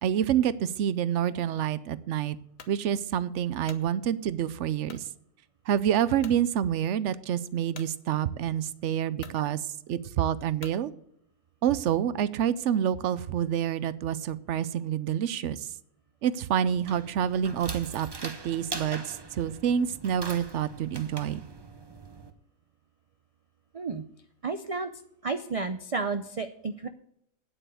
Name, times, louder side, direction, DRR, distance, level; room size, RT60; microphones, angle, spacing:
voice 1, 0.0-2.4 2.7-5.0 5.7-9.6 9.9-10.9 11.6-15.6 16.2-21.4, right 9 dB, 65° right, 16 dB, 0.9 m, -27 dB
sound 1, 2.6-2.8 3.4-3.9 4.9-5.1 5.6-5.7 6.2-6.4 7.7-7.9 8.7-8.8 9.2-9.4 10.6-10.8, left 7 dB, 75° left, 1.4 m, -47 dB
sound 2, 16.7-22.3, right 3 dB, 20° right, 0.8 m, -42 dB
voice 2, 24.4-24.9 25.2-26.9, right 4 dB, 50° right, 9 dB, 0.4 m, -31 dB
9.2 x 8.0 x 7.7 m, 0.73 s
omnidirectional pair, 1.4 m